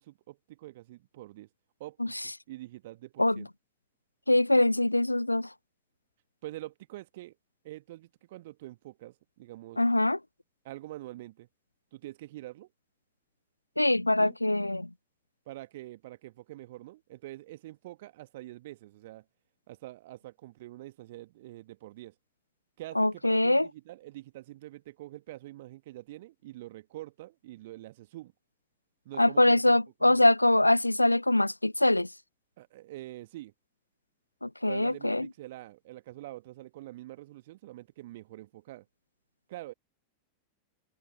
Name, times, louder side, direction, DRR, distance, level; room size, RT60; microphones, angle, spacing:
voice 1, 0.0-1.5 1.8-3.5 6.4-7.4 7.6-9.8 10.6-11.5 11.9-12.7 14.2-14.4 15.4-19.2 19.7-22.1 22.8-28.3 29.0-30.3 32.6-33.5 34.6-38.8 39.5-39.7, right 16 dB, 55° right, 1.5 m, -45 dB
voice 2, 4.3-5.5 9.8-10.2 13.8-14.9 23.0-23.7 29.2-32.1 34.4-35.3, left 1 dB, 85° left, 0.3 m, -23 dB
figure-of-eight pair, 90°, 0 cm